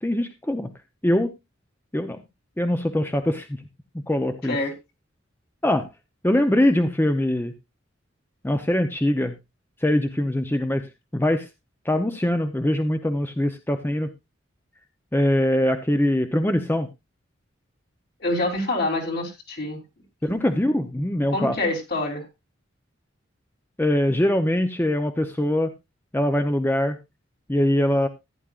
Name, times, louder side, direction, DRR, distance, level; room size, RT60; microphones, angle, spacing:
voice 1, 0.0-0.7 1.0-1.3 1.9-2.2 2.6-3.6 4.1-4.6 5.6-5.9 6.2-7.5 8.4-9.4 9.8-11.5 11.8-14.1 15.1-16.9 20.2-21.6 23.8-25.7 26.1-27.0 27.5-28.1, left 1 dB, 10° left, 8 dB, 0.7 m, -22 dB
voice 2, 18.2-19.8 20.2-20.4 21.3-22.2, left 2 dB, 55° left, 1 dB, 3.6 m, -26 dB
15.0 x 10.0 x 2.4 m, 0.23 s
head